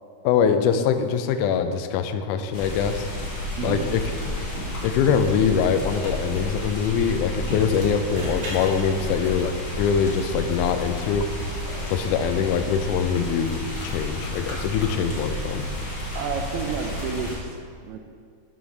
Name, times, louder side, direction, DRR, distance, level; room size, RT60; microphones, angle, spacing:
voice 1, 0.2-3.1 3.6-4.1 4.8-11.3 11.9-15.7, left 7 dB, 80° left, 8 dB, 2.0 m, -23 dB
sound 1, 2.5-17.4, left 1 dB, 45° left, 2.2 m, -31 dB
sound 2, 8.1-9.6 11.7-12.1, right 1 dB, 60° right, 3.1 m, -38 dB
voice 2, 16.1-18.0, right 6 dB, 85° right, 5 dB, 1.6 m, -31 dB
12.5 x 5.9 x 3.2 m, 2.1 s
omnidirectional pair, 3.8 m